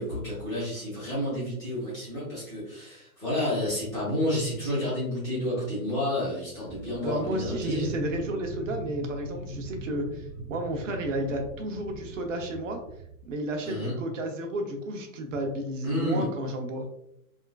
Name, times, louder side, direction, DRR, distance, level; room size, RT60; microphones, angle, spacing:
voice 1, 0.0-7.9 13.6-13.9 15.8-16.3, left 1 dB, 5° left, -11 dB, 0.7 m, -30 dB
sound 1, 6.6-13.4 13.9-14.0, right 2 dB, 75° right, 1.3 m, -41 dB
voice 2, 7.0-12.8 13.2-16.9, right 1 dB, 55° right, 3 dB, 0.8 m, -32 dB
3.5 x 2.4 x 2.3 m, 0.76 s
hypercardioid pair, 175°, 44 cm